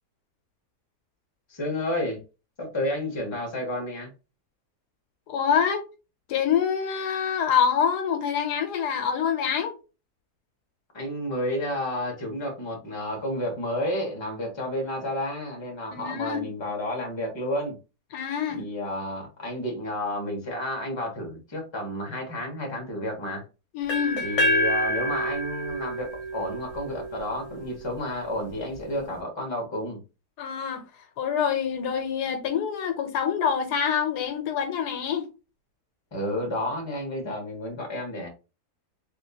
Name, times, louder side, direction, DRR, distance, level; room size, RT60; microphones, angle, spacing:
voice 1, 1.5-2.2 2.6-4.1 10.9-17.8 18.5-23.4 24.2-30.0 36.1-38.3, left 1 dB, 20° left, 1.1 m, -31 dB
voice 2, 5.3-5.8 6.3-9.7 15.9-16.5 18.1-18.6 23.7-24.2 30.4-30.8 31.2-35.3, left 7 dB, 85° left, 1.3 m, -26 dB
sound 1, 23.9-27.8, equal, 50° left, 1.2 m, -28 dB
3.3 x 3.1 x 2.8 m
omnidirectional pair, 1.7 m